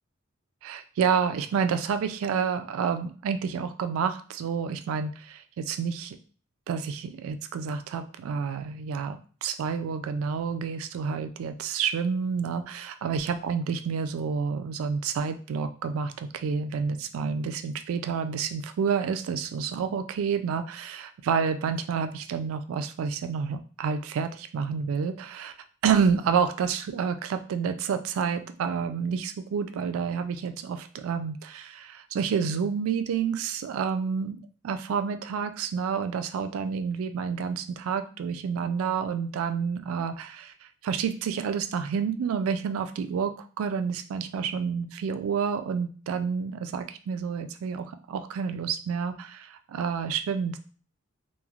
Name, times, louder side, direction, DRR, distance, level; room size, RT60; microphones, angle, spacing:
voice 1, 0.6-6.2 6.7-25.5 25.8-40.5 40.8-50.6, right 6 dB, 70° right, 10 dB, 0.3 m, -29 dB
3.1 x 2.1 x 2.3 m, 0.40 s
head